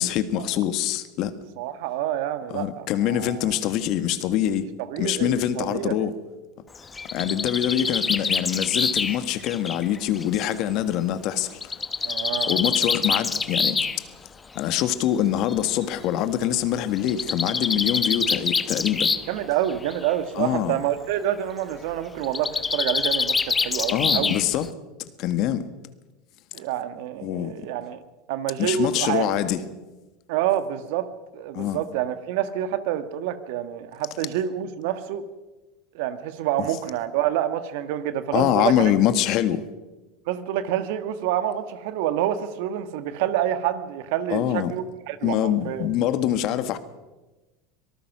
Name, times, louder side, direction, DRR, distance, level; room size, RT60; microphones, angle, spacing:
voice 1, 0.0-1.3 2.5-4.7 5.0-6.2 7.1-12.1 12.5-14.0 14.5-19.1 20.4-20.8 23.9-24.7 25.2-25.7 27.2-27.5 28.6-29.6 31.5-31.8 36.6-36.7 38.3-39.6 44.3-44.7 45.2-46.8, left 11 dB, 55° left, 1.6 m, -24 dB
voice 2, 1.6-3.5 4.9-6.0 7.2-7.3 12.0-12.6 19.3-24.3 26.5-28.0 28.3-29.3 30.3-31.1 31.3-35.2 35.9-38.9 40.3-45.4 45.6-45.9, right 11 dB, 65° right, 1.6 m, -27 dB
Bird, 6.7-10.5 11.6-14.0 15.0-15.1 15.5-15.6 15.8-15.9 17.0-19.4 19.7-20.1 22.2-24.7, left 4 dB, 20° left, 1.2 m, -25 dB
25.0 x 19.0 x 6.1 m
hypercardioid pair, 85°, 0 cm